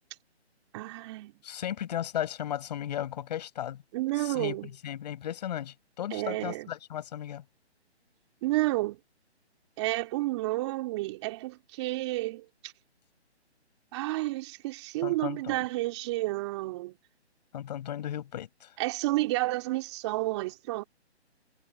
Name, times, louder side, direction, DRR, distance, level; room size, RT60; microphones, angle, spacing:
voice 1, 0.7-1.3 3.9-4.7 6.1-6.7 8.4-9.0 9.8-12.7 13.9-16.9 18.8-20.8, right 19 dB, 25° right, 3.2 m, -31 dB
voice 2, 1.4-3.8 4.2-7.4 15.0-15.6 17.5-18.7, left 11 dB, 40° left, 7.4 m, -35 dB
hypercardioid pair, 155°, 34 cm